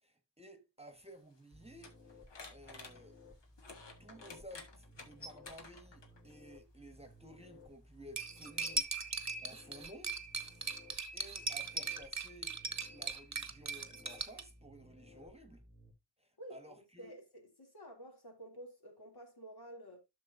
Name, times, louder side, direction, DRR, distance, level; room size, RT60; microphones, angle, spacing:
voice 1, 0.0-2.0 2.5-3.2 4.0-8.9 9.4-10.2 10.7-12.6 12.9-15.7 16.2-17.2, right 1 dB, 15° right, 1.3 m, -55 dB
sound 1, 0.9-6.3 7.4-7.6 8.3-11.7, left 3 dB, 80° left, 1.6 m, -54 dB
sound 2, 1.5-15.9, left 1 dB, 30° left, 2.7 m, -59 dB
Cutlery silverware, 8.2-14.4, right 4 dB, 40° right, 1.0 m, -39 dB
voice 2, 16.4-20.0, right 1 dB, 60° left, 2.8 m, -51 dB
11.5 x 6.3 x 2.6 m
wide cardioid pair, 65°, 42 cm